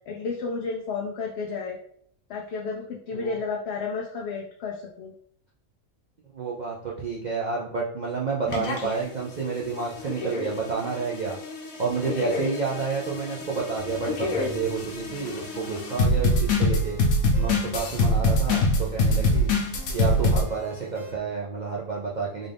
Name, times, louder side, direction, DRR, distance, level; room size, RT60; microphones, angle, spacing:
voice 1, 0.1-1.8 2.3-5.1, left 4 dB, 65° left, 0 dB, 0.7 m, -32 dB
voice 2, 6.3-11.4 11.8-17.0 17.4-19.5 19.9-22.5, right 5 dB, 70° right, -4 dB, 0.4 m, -30 dB
sound 1, 8.5-9.0 9.8-20.4, left 1 dB, 80° left, 1.2 m, -25 dB
sound 2, 13.8-21.2, right 2 dB, 35° right, 1.1 m, -44 dB
3.9 x 2.4 x 3.3 m, 0.64 s
omnidirectional pair, 1.4 m